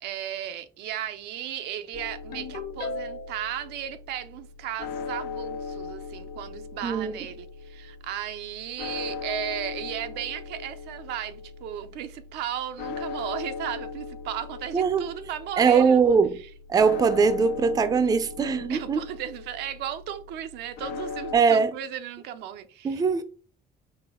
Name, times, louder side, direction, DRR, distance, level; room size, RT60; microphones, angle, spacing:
voice 1, 0.0-16.0 18.7-23.0, right 10 dB, 85° right, 0.5 m, -35 dB
sound 1, 1.9-21.4, left 5 dB, 80° left, 0.4 m, -39 dB
Ringtone, 2.3-3.5, left 3 dB, 60° left, 1.2 m, -35 dB
voice 2, 6.8-7.1 14.7-15.1 15.6-16.4 16.7-19.0 21.3-21.7 22.8-23.2, right 5 dB, 20° right, 0.4 m, -21 dB
4.2 x 2.4 x 3.5 m
cardioid pair, 110°, 17 cm